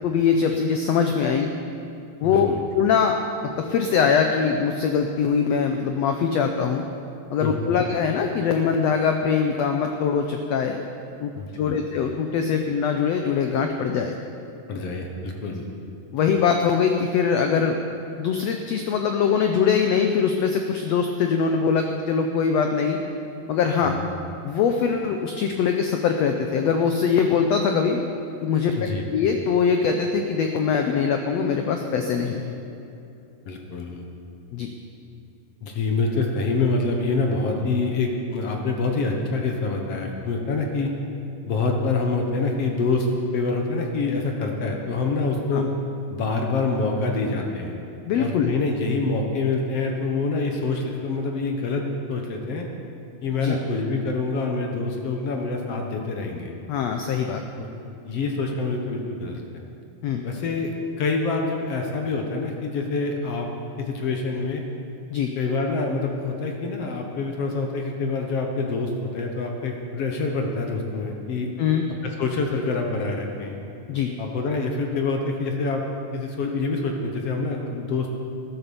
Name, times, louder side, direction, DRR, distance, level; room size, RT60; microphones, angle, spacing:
voice 1, 0.0-1.5 2.2-3.2 3.6-6.8 7.3-10.8 11.2-14.1 16.1-17.8 18.2-23.0 23.5-23.9 24.4-28.0 28.4-28.8 29.1-32.5 34.5-34.7 45.5-45.6 48.1-48.5 53.4-53.6 56.7-57.4 60.0-60.2 65.1-65.3 71.6-71.8 73.9-74.1, left 6 dB, 85° left, 4 dB, 1.4 m, -22 dB
voice 2, 2.2-2.6 7.4-7.8 11.3-11.8 14.7-15.7 23.8-24.0 28.8-29.0 33.5-34.0 35.6-40.9 41.5-43.1 43.3-45.7 46.1-47.7 48.2-51.8 52.1-52.7 53.2-56.5 57.6-57.7 58.0-59.4 60.2-63.5 63.8-64.6 65.4-71.5 72.2-73.6 74.2-75.8 76.1-78.2, left 3 dB, 60° left, 2 dB, 1.8 m, -26 dB
14.0 x 11.0 x 7.0 m, 2.7 s
omnidirectional pair, 4.0 m